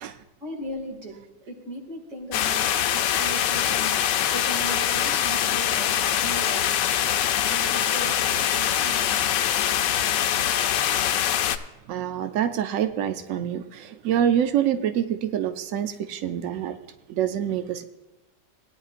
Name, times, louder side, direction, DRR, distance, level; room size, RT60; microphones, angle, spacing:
voice 1, 0.4-4.0 4.3-6.9 7.5-9.2, right 1 dB, 40° right, 1 dB, 2.6 m, -38 dB
sound 1, 2.3-11.6, left 10 dB, 80° left, 1.3 m, -23 dB
voice 2, 11.9-16.8 17.1-17.8, right 10 dB, 75° right, 9 dB, 0.7 m, -26 dB
17.5 x 10.0 x 2.5 m, 1.1 s
omnidirectional pair, 1.9 m